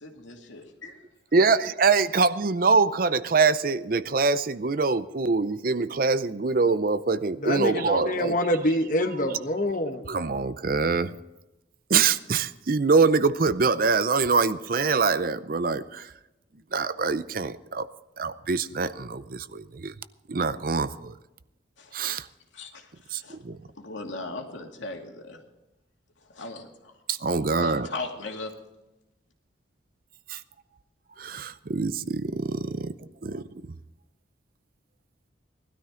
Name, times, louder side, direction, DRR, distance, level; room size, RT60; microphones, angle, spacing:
voice 1, 0.0-1.0 21.8-22.0 22.5-23.4 23.8-25.4 26.3-26.9 27.5-28.5, left 3 dB, 80° left, 2 dB, 2.5 m, -38 dB
voice 2, 1.3-8.3 10.1-11.2 11.9-16.1 16.7-17.9 18.2-19.9 20.3-21.1 21.9-22.3 23.1-23.6 27.1-27.9 30.3-30.4 31.2-32.9 33.2-33.4, right 4 dB, 45° right, 14 dB, 0.5 m, -24 dB
voice 3, 7.4-10.0, left 1 dB, 45° left, 5 dB, 1.1 m, -26 dB
19.5 x 12.5 x 3.8 m, 0.96 s
head